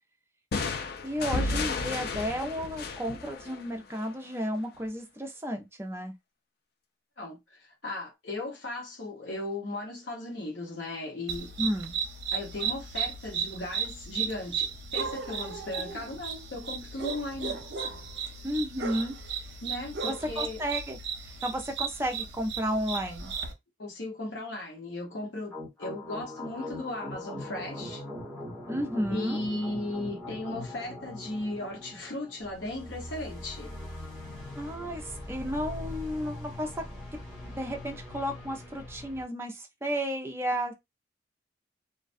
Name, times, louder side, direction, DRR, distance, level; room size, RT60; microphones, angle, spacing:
sound 1, 0.5-4.2, left 3 dB, 50° left, 0.4 m, -33 dB
voice 1, 1.0-6.1 11.6-12.0 18.4-19.2 20.0-21.0 21.4-23.3 28.7-29.4 34.6-36.7 37.5-40.7, equal, 15° right, 0.4 m, -32 dB
voice 2, 7.2-11.5 12.3-17.7 19.6-20.6 23.8-28.0 29.1-33.7 34.8-35.0, left 2 dB, 70° left, 1.0 m, -37 dB
sound 2, 11.3-23.5, right 6 dB, 60° right, 0.6 m, -35 dB
sound 3, 25.5-39.2, left 1 dB, 5° left, 0.9 m, -41 dB
2.4 x 2.1 x 2.5 m
head